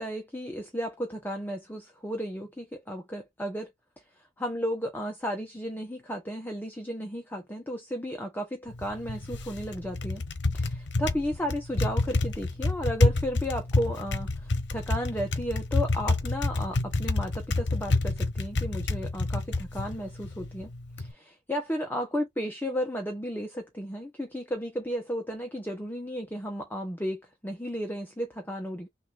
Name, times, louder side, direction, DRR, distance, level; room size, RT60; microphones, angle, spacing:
voice 1, 0.0-3.7 4.4-10.2 10.5-20.7 21.0-28.9, equal, 10° left, 0.9 m, -34 dB
Typing, 8.7-21.1, left 2 dB, 75° left, 0.9 m, -29 dB
6.4 x 2.7 x 2.4 m
head